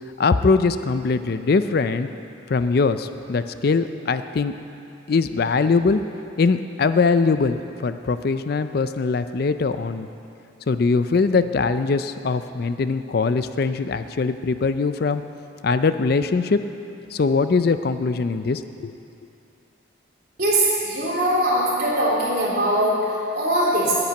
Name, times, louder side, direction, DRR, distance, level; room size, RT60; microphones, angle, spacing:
voice 1, 0.2-2.1 2.5-4.5 5.1-6.0 6.4-10.1 10.7-15.2 15.6-16.6 17.1-18.9, left 4 dB, 50° left, 11 dB, 0.4 m, -21 dB
voice 2, 20.4-24.0, right 1 dB, 50° right, -6 dB, 3.5 m, -21 dB
10.0 x 8.8 x 9.4 m, 2.7 s
head